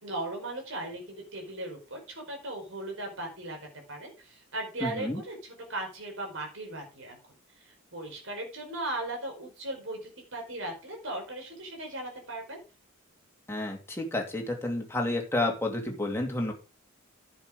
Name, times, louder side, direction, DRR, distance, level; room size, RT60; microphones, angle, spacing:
voice 1, 0.0-3.6 3.9-7.2 7.6-12.6, right 1 dB, 60° right, 3 dB, 5.1 m, -37 dB
voice 2, 4.8-5.2 13.5-16.5, left 2 dB, 10° left, 1 dB, 2.6 m, -30 dB
10.5 x 7.3 x 5.0 m, 0.33 s
head